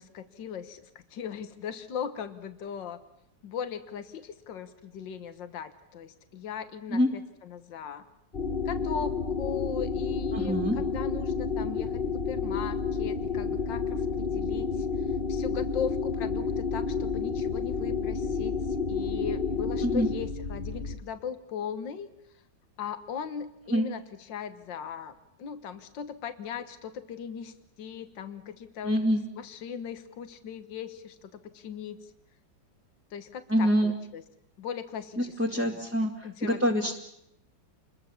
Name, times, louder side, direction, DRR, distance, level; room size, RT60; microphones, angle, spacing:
voice 1, 0.0-3.0 3.4-8.1 8.6-14.9 15.3-22.1 22.8-29.1 29.4-32.1 33.1-34.2 34.6-35.7 36.2-36.9, left 7 dB, 80° left, 10 dB, 2.0 m, -38 dB
sound 1, 8.3-21.0, left 5 dB, 35° left, 1.4 m, -30 dB
voice 2, 10.3-10.8 19.8-20.1 23.7-23.9 28.8-29.2 33.5-33.9 35.2-36.9, equal, 5° right, -2 dB, 2.2 m, -25 dB
28.5 x 22.5 x 7.2 m, 0.77 s
omnidirectional pair, 2.0 m